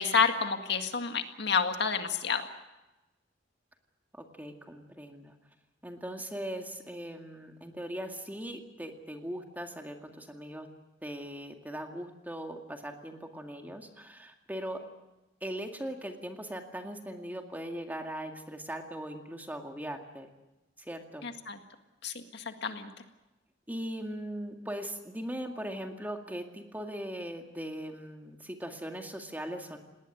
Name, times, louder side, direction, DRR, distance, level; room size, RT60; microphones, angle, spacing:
voice 1, 0.0-2.5 21.2-21.6 22.0-22.9, left 5 dB, 65° left, 6 dB, 1.9 m, -29 dB
voice 2, 4.1-5.3 5.8-10.7 11.0-14.9 15.4-20.3 20.8-21.2 23.7-29.8, equal, 10° right, 4 dB, 2.1 m, -39 dB
19.5 x 19.5 x 9.6 m, 1.0 s
head